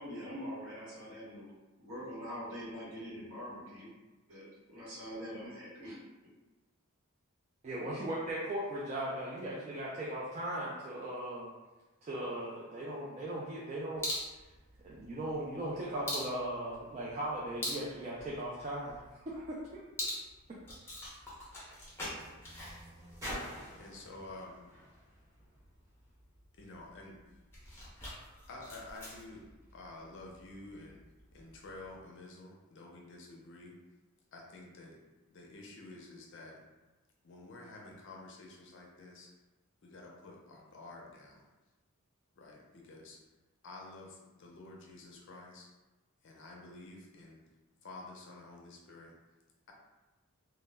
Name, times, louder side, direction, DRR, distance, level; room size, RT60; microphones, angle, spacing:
voice 1, 0.0-1.5 1.8-3.9 4.3-6.0, equal, 65° right, -8 dB, 1.1 m, -44 dB
voice 2, 7.6-11.5 12.0-14.0 14.8-19.8, right 1 dB, 30° right, -6 dB, 0.3 m, -38 dB
sound 1, 13.9-32.0, left 1 dB, 10° left, 0.6 m, -46 dB
sound 2, 19.9-26.2 27.0-27.1, equal, 15° right, 0.9 m, -49 dB
voice 3, 23.7-24.6 26.5-27.2 28.5-29.4 29.7-31.0 31.3-33.8 34.3-35.0 35.3-36.6 37.2-39.3 39.8-41.4 42.4-43.2 43.6-45.7 46.2-47.4 47.8-49.2, left 2 dB, 55° left, -1 dB, 0.5 m, -50 dB
2.2 x 2.0 x 3.3 m, 1.1 s
head